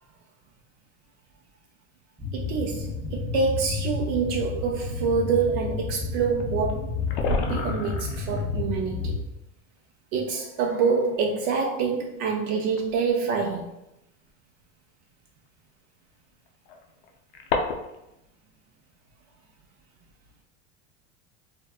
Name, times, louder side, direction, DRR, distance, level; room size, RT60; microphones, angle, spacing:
sound 1, 2.2-9.2, left 4 dB, 5° right, 0.5 m, -31 dB
voice 1, 2.3-6.8 7.3-9.2 10.1-13.7, right 5 dB, 60° right, 1 dB, 0.4 m, -26 dB
sound 2, 3.8-3.9 6.4-6.5 6.7-6.8 7.0-8.4 9.8-9.9 10.7-10.8 12.8-13.0 14.3-14.4 16.5-18.1, left 4 dB, 65° left, 0.5 m, -30 dB
2.6 x 2.2 x 2.3 m, 0.88 s
supercardioid pair, 120°, 35 cm